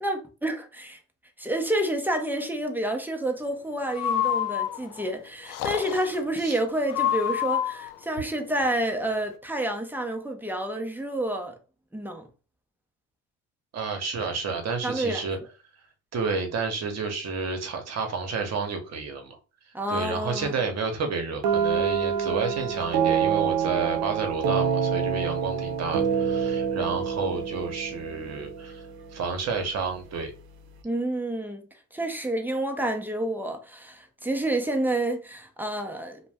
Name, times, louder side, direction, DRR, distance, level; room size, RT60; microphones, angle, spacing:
voice 1, 0.0-1.0 1.4-11.6 11.9-12.3 14.8-15.3 19.7-20.5 30.8-36.2, right 1 dB, 5° right, 0.6 m, -29 dB
Breathing, 3.9-5.0 5.5-6.2 6.9-7.9, left 10 dB, 70° left, 0.5 m, -27 dB
voice 2, 13.7-15.4 16.1-19.4 19.9-28.9 29.1-30.3, right 4 dB, 45° right, 0.9 m, -30 dB
sound 1, 21.4-29.2, right 7 dB, 75° right, 0.7 m, -26 dB
2.5 x 2.2 x 3.3 m
supercardioid pair, 80°, 35 cm